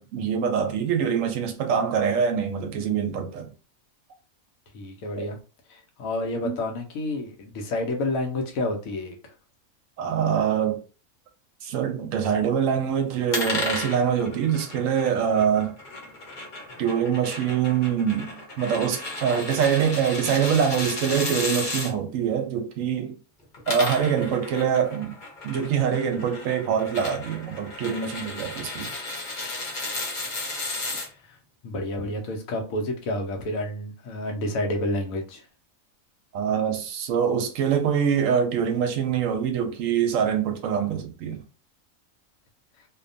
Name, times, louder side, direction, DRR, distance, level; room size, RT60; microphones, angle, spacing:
voice 1, 0.0-3.5 5.2-5.3 6.4-6.6 10.0-10.8 11.6-15.7 16.8-23.2 23.7-25.2 25.4-28.9 36.3-41.4, right 7 dB, 75° right, 0.9 m, -24 dB
voice 2, 4.7-5.4 5.7-9.2 31.0-31.4 31.6-35.4, left 1 dB, 75° left, 1.1 m, -29 dB
sound 1, 13.3-21.9 23.4-31.1, left 2 dB, 45° left, 0.9 m, -34 dB
2.7 x 2.2 x 2.5 m
omnidirectional pair, 1.4 m